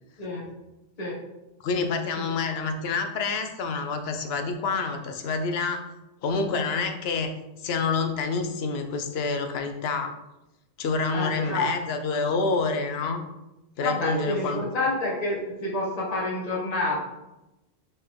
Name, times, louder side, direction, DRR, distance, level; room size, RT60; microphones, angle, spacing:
voice 1, 1.6-5.8 6.2-7.3 7.6-10.1 10.8-13.2 13.8-14.6, left 4 dB, 75° left, 7 dB, 0.8 m, -27 dB
voice 2, 2.2-2.5 11.1-11.7 13.8-17.0, left 2 dB, 40° left, -6 dB, 1.3 m, -28 dB
4.2 x 3.4 x 3.4 m, 0.96 s
omnidirectional pair, 1.1 m